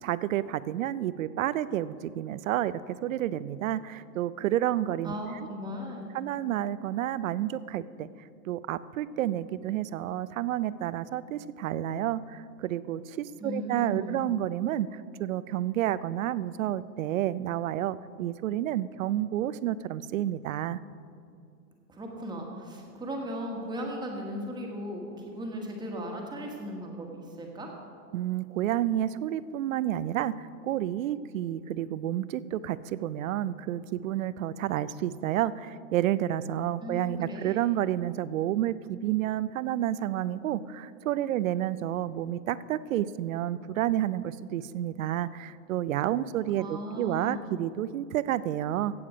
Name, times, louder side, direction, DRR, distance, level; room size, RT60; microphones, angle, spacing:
voice 1, 0.0-2.7 3.0-5.1 6.1-8.1 8.5-20.8 28.1-48.9, right 12 dB, 55° right, 17 dB, 0.5 m, -30 dB
voice 2, 5.0-6.1 13.4-14.2 21.9-27.7 36.8-37.7 46.6-47.4, equal, 10° right, 0 dB, 1.3 m, -37 dB
16.5 x 7.3 x 5.0 m, 2.4 s
hypercardioid pair, 145°, 50 cm